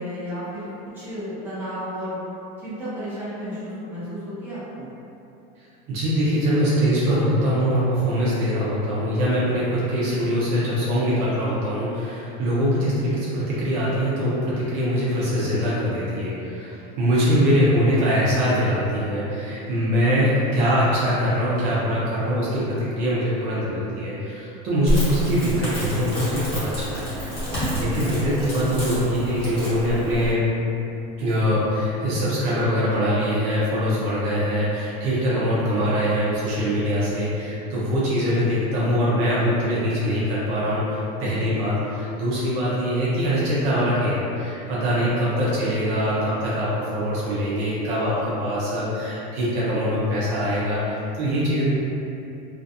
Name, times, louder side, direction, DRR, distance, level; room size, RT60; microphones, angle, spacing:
voice 1, 0.0-2.2 2.6-4.9, equal, 10° right, -13 dB, 0.8 m, -33 dB
voice 2, 5.9-27.4 27.8-30.4 31.2-51.6, equal, 50° right, -8 dB, 0.6 m, -23 dB
Crackle, 24.9-30.3, equal, 25° left, 1.1 m, -28 dB
2.5 x 2.3 x 2.6 m, 2.8 s
cardioid pair, 160°, 21 cm